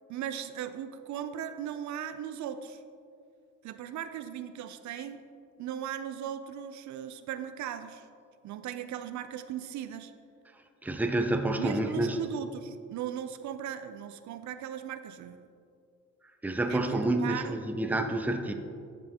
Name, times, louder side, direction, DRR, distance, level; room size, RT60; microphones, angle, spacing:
voice 1, 0.1-2.8 3.6-5.2 5.6-8.1 8.4-10.1 11.6-15.5 16.7-17.6, right 9 dB, 70° right, 11 dB, 0.5 m, -38 dB
voice 2, 10.8-12.2 16.4-18.5, right 1 dB, 5° right, 6 dB, 0.5 m, -28 dB
11.5 x 5.5 x 2.8 m, 2.4 s
cardioid pair, 90°, 30 cm